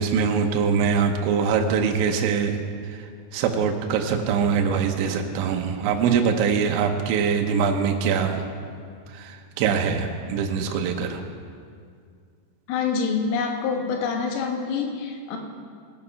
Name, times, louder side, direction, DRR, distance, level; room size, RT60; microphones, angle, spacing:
voice 1, 0.0-2.6 2.9-3.0 3.3-8.4 9.1-11.3, right 6 dB, 80° right, 3 dB, 3.1 m, -23 dB
voice 2, 12.7-15.4, left 5 dB, 85° left, 3 dB, 3.8 m, -26 dB
19.0 x 7.6 x 5.6 m, 2.2 s
omnidirectional pair, 5.7 m